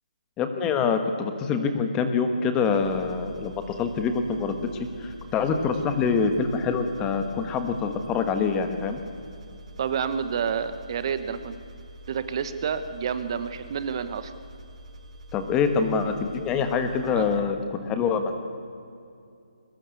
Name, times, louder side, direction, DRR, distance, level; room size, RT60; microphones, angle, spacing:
voice 1, 0.4-9.0 15.3-18.5, left 5 dB, 15° left, 7 dB, 1.3 m, -25 dB
sound 1, 2.6-17.4, equal, 60° right, 3.7 m, -46 dB
voice 2, 9.8-11.6 12.1-14.3 17.1-17.3, right 7 dB, 40° right, 11 dB, 1.1 m, -29 dB
22.0 x 19.0 x 8.4 m, 2.5 s
hypercardioid pair, 165°, 4 cm